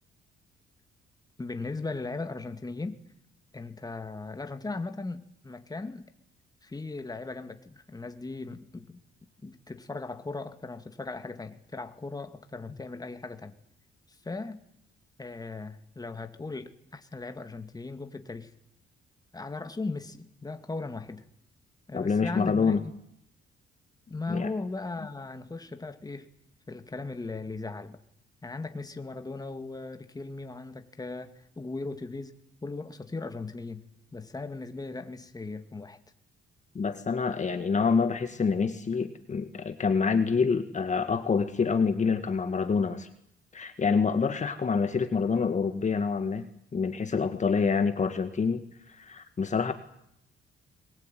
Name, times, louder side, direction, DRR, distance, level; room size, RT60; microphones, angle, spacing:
voice 1, 1.4-3.0 3.5-6.1 6.6-9.0 9.4-13.5 14.1-14.6 15.2-18.5 19.3-21.2 21.9-22.9 24.1-26.3 26.7-28.0 28.4-33.9 34.1-36.0, left 3 dB, 20° left, 2.4 m, -38 dB
voice 2, 21.9-22.8 24.3-24.5 36.8-43.1 43.5-46.5 46.7-48.6 48.9-49.7, left 5 dB, 35° left, 1.9 m, -27 dB
22.5 x 21.5 x 9.4 m
cardioid pair, 90°, 20 cm